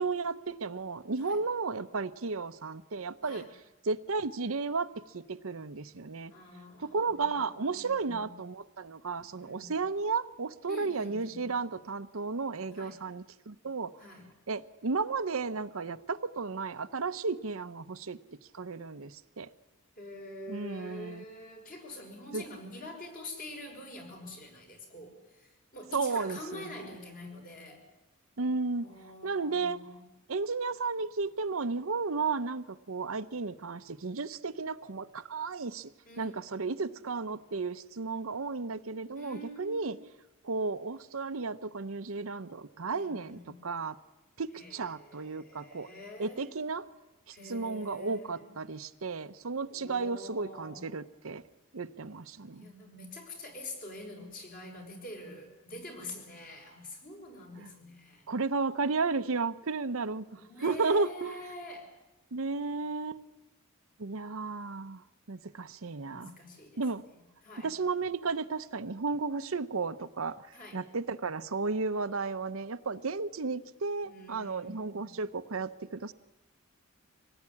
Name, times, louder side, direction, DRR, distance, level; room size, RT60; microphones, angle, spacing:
voice 1, 0.0-3.4 3.8-4.9 5.1-6.3 6.8-13.9 14.5-18.2 18.5-19.5 20.5-21.2 22.3-22.4 25.9-26.8 28.4-28.9 29.2-29.8 30.3-35.9 36.2-40.0 40.4-44.0 44.4-45.9 46.2-46.9 47.3-51.4 51.7-52.7 57.6-57.7 58.3-61.4 62.3-63.2 64.0-65.0 65.3-66.3 66.8-67.0 67.6-70.5 70.7-76.1, right 4 dB, 70° right, 11 dB, 0.8 m, -33 dB
voice 2, 6.3-8.3 9.4-9.8 10.7-11.5 12.7-13.0 14.0-14.3 20.0-27.8 28.8-30.0 36.0-36.9 39.1-40.0 42.9-43.5 44.5-46.5 47.3-48.5 49.7-50.9 52.5-58.2 60.4-61.9 66.1-66.8 67.4-67.7 70.5-70.8 74.0-75.1, left 1 dB, 40° left, 2 dB, 5.8 m, -46 dB
25.0 x 18.5 x 9.8 m, 1.0 s
head